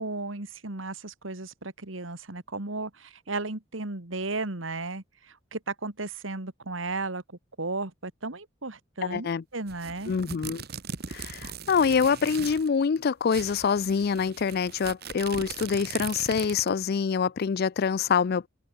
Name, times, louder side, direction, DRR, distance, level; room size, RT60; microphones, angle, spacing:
voice 1, 0.0-7.2 7.6-10.1, right 3 dB, 90° right, 2.4 m, -34 dB
voice 2, 9.1-9.4 10.1-10.6 11.1-18.5, left 6 dB, 55° left, 0.4 m, -25 dB
sound 1, 9.7-12.7 13.0-13.1 13.3-16.8, right 6 dB, 55° right, 1.6 m, -39 dB
head